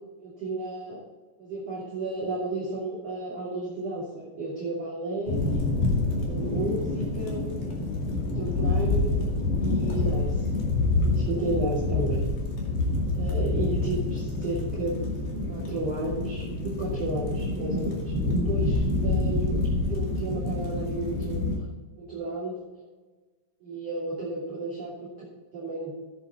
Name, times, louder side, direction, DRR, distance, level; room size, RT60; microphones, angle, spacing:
voice 1, 0.2-1.0 1.4-5.6 6.2-7.6 8.2-9.3 9.6-10.5 11.1-12.2 13.1-15.1 15.5-19.6 19.9-21.6 21.9-22.6 23.6-25.9, right 2 dB, 35° right, -6 dB, 3.2 m, -33 dB
sound 1, 5.3-21.6, left 2 dB, 50° left, 3.3 m, -27 dB
15.0 x 8.7 x 4.1 m, 1.3 s
omnidirectional pair, 5.9 m